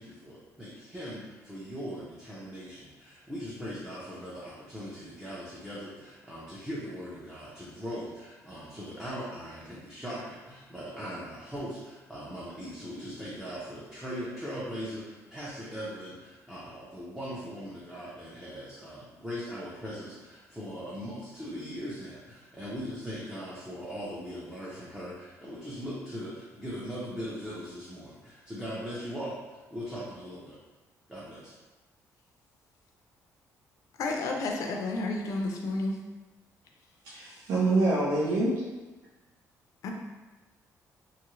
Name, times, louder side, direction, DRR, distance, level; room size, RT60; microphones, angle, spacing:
voice 1, 0.0-30.6 31.1-31.5, equal, 5° right, -8 dB, 0.4 m, -40 dB
voice 2, 34.0-36.0 39.8-39.9, left 2 dB, 65° left, 1 dB, 0.4 m, -31 dB
voice 3, 37.0-38.6, right 2 dB, 85° right, -7 dB, 0.6 m, -26 dB
2.8 x 2.4 x 3.0 m, 1.2 s
cardioid pair, 170°, 6 cm